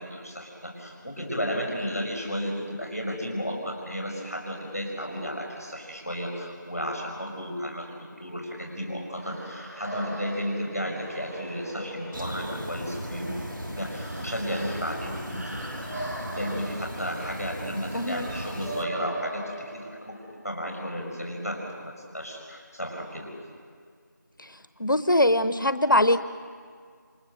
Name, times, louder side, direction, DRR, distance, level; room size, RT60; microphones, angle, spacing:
voice 1, 0.0-7.9 8.2-19.4 19.7-20.2 20.4-23.3, equal, 5° left, -18 dB, 4.5 m, -33 dB
sound 1, 9.2-20.2, right 1 dB, 50° right, 6.8 m, -40 dB
sound 2, 12.1-18.8, equal, 80° right, 2.6 m, -37 dB
voice 2, 17.9-18.3 24.8-26.2, left 1 dB, 75° left, 12 dB, 0.9 m, -22 dB
28.5 x 25.0 x 6.6 m, 2.1 s
figure-of-eight pair, 175°, 11 cm